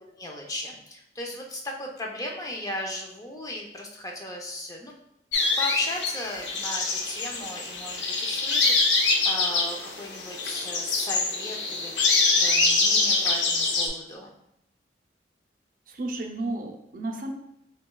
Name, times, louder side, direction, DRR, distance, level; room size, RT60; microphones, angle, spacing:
voice 1, 0.0-4.9 5.6-11.9 12.3-14.3, left 1 dB, 20° left, 0 dB, 0.5 m, -36 dB
sound 1, 5.3-13.9, left 3 dB, 80° left, 0.6 m, -25 dB
voice 2, 15.9-17.3, right 2 dB, 50° right, 2 dB, 0.5 m, -32 dB
5.9 x 2.3 x 2.3 m, 0.79 s
head